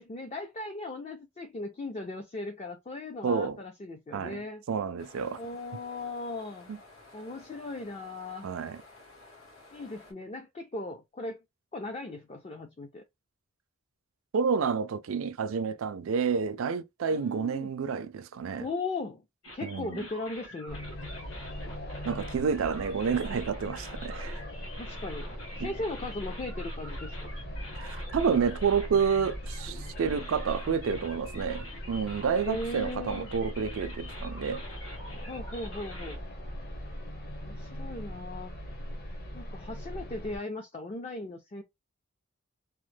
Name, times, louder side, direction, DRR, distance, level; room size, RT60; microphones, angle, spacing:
voice 1, 0.0-4.6 5.4-6.7 7.1-8.5 9.7-11.4 11.7-13.0 17.1-17.7 18.6-19.2 19.5-20.8 24.8-25.3 25.6-27.3 32.4-33.3 35.3-36.2 37.4-38.5 39.3-41.6, left 2 dB, 30° left, 0.4 m, -38 dB
voice 2, 3.2-3.6 4.1-4.4 4.7-5.4 6.7-6.8 8.4-8.8 14.3-18.7 19.6-20.1 22.0-24.4 25.6-25.7 27.8-34.6, right 6 dB, 70° right, 0.4 m, -29 dB
sound 1, 5.0-10.1, left 2 dB, 85° left, 1.7 m, -53 dB
sound 2, 19.4-36.2, left 1 dB, 65° left, 1.2 m, -46 dB
sound 3, 20.7-40.4, equal, 50° left, 0.9 m, -40 dB
3.0 x 2.0 x 3.2 m
head